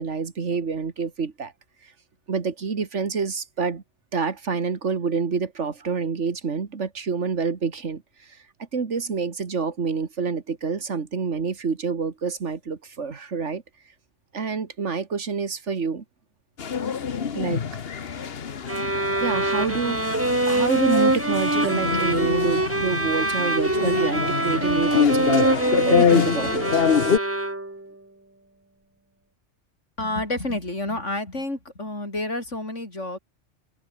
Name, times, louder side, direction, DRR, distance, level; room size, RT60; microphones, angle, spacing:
voice 1, 0.0-1.5 1.8-1.9 2.3-3.8 4.1-8.4 8.7-13.6 14.3-16.0 17.3-17.6 19.2-20.0 20.5-26.8, right 5 dB, 75° right, 2.1 m, -27 dB
sound 1, 16.6-27.2, left 6 dB, 55° left, 1.3 m, -25 dB
sound 2, 18.7-27.9, right 2 dB, 10° right, 1.1 m, -24 dB
voice 2, 30.0-33.2, left 2 dB, 80° left, 6.6 m, -29 dB
open air
omnidirectional pair, 1.2 m